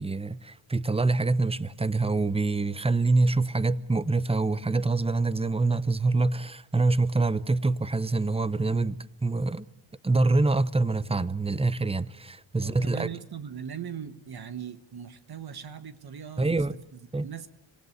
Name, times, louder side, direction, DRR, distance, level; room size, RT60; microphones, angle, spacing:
voice 1, 0.0-9.6 10.0-13.1 16.4-16.7 17.1-17.3, right 3 dB, 10° right, 0.8 m, -25 dB
voice 2, 12.6-16.7 16.9-17.5, right 8 dB, 50° right, 1.5 m, -39 dB
26.0 x 18.5 x 8.1 m
cardioid pair, 90°, 49 cm